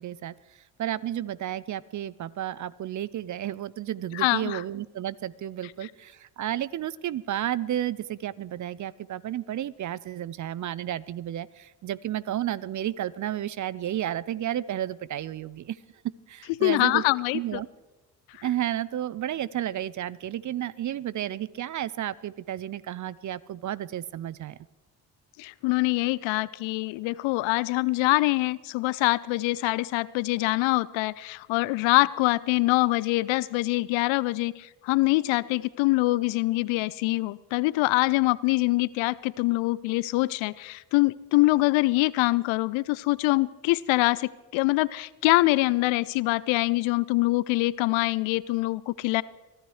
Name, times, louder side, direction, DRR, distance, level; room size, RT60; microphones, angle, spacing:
voice 1, 0.0-15.8 16.3-17.0 17.3-17.7 18.4-24.6, right 12 dB, 40° right, 20 dB, 0.5 m, -32 dB
voice 2, 4.1-4.6 16.6-17.6 25.4-49.2, left 21 dB, 65° left, 20 dB, 0.6 m, -24 dB
23.5 x 13.0 x 3.2 m, 1.1 s
hypercardioid pair, 45°, 49 cm